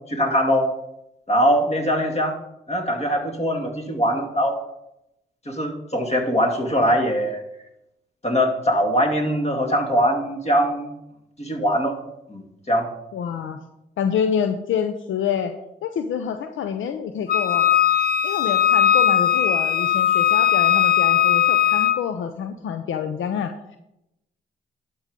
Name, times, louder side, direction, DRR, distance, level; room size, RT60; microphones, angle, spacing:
voice 1, 0.1-0.7 1.3-2.3 2.7-4.6 5.5-7.4 8.2-10.9 11.4-12.0 12.3-12.4 12.7-12.9, equal, 30° left, 3 dB, 2.4 m, -21 dB
voice 2, 13.1-13.6 14.0-17.7 18.2-23.8, left 7 dB, 70° left, 8 dB, 0.6 m, -27 dB
Wind instrument woodwind instrument, 17.3-22.0, left 9 dB, 45° left, 0.9 m, -18 dB
11.5 x 5.4 x 5.1 m, 0.87 s
hypercardioid pair, 40°, 21 cm